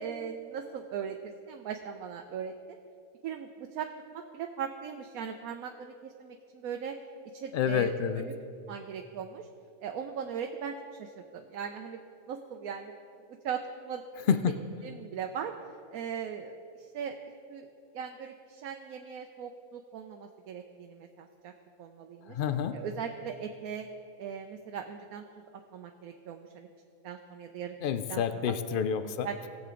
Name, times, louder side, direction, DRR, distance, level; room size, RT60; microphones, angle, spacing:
voice 1, 0.0-2.5 3.2-7.0 7.3-8.3 8.7-9.5 9.8-12.0 12.3-12.9 13.4-14.4 14.8-15.5 15.9-17.2 17.5-17.7 17.9-21.5 21.8-22.4 22.7-23.9 24.2-25.2 25.7-26.7 27.0-27.8 28.1-28.5 29.2-29.5, right 7 dB, 85° right, 4 dB, 1.1 m, -39 dB
voice 2, 7.5-8.2 14.3-14.5 22.3-22.8 27.8-29.3, left 7 dB, 75° left, 10 dB, 0.4 m, -28 dB
18.5 x 7.7 x 3.7 m, 2.5 s
omnidirectional pair, 1.5 m